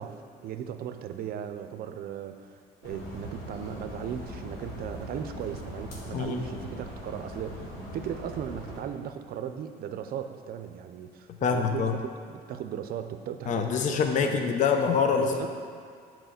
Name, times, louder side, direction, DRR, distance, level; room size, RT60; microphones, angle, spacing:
voice 1, 0.0-14.5 15.2-15.5, right 9 dB, 65° right, 9 dB, 0.6 m, -37 dB
sound 1, 2.8-8.8, left 1 dB, 85° left, 1.8 m, -40 dB
voice 2, 11.4-11.9 13.5-15.5, left 6 dB, 45° left, 5 dB, 0.6 m, -25 dB
7.9 x 4.4 x 5.8 m, 2.2 s
cardioid pair, 110°, 17 cm